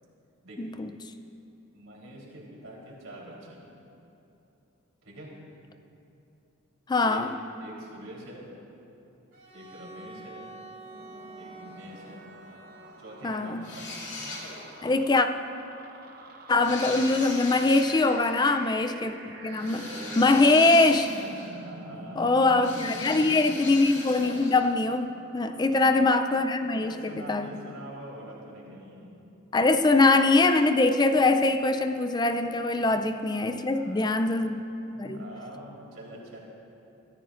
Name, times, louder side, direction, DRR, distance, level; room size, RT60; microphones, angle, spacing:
voice 1, 0.6-0.9 6.9-7.3 13.2-13.7 14.8-15.3 16.5-19.9 20.2-21.1 22.2-27.5 29.5-34.6 35.0-35.3, left 3 dB, 20° left, 8 dB, 0.4 m, -23 dB
voice 2, 1.7-3.7 5.0-5.3 7.0-7.2 7.6-8.5 9.5-10.5 11.4-12.2 13.0-13.9 16.5-16.8 19.5-20.8 21.5-23.7 25.1-25.3 25.6-25.9 26.7-29.2 29.8-29.9 33.7-34.5 34.9-36.4, right 1 dB, 85° right, -4 dB, 3.7 m, -44 dB
Bowed string instrument, 9.3-14.3, right 2 dB, 65° right, 3.7 m, -48 dB
sound 1, 10.6-27.0, right 2 dB, 45° right, 1.0 m, -47 dB
sound 2, 13.6-14.8 16.6-18.0 19.6-21.7 22.6-24.6, left 2 dB, 55° left, 2.7 m, -39 dB
23.5 x 14.5 x 2.5 m, 2.9 s
head